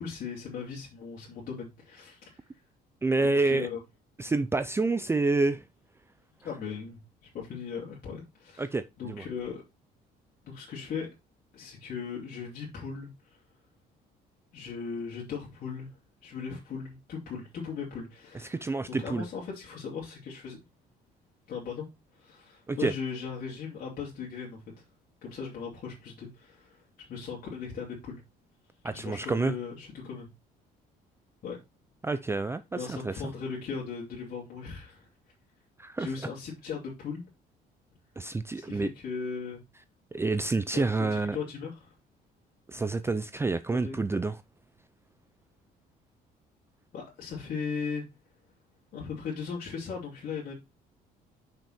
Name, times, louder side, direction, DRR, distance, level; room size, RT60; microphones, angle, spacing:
voice 1, 0.0-2.3 3.2-3.8 6.4-8.7 9.0-9.6 10.4-11.1 11.5-13.4 14.5-15.9 16.2-20.6 21.5-21.9 22.2-24.6 25.2-28.2 28.9-30.3 31.4-31.6 32.8-35.1 36.0-37.2 38.5-39.6 40.7-41.9 43.7-44.0 46.9-48.0 48.9-50.5, left 6 dB, 55° left, 2.9 m, -38 dB
voice 2, 3.0-3.7 4.2-5.6 8.6-9.2 18.3-19.3 22.7-22.9 28.8-29.6 32.0-33.1 35.8-36.1 38.2-38.9 40.1-41.4 42.7-44.4, right 3 dB, 15° right, 0.4 m, -28 dB
5.9 x 5.5 x 4.3 m
cardioid pair, 110°, 17 cm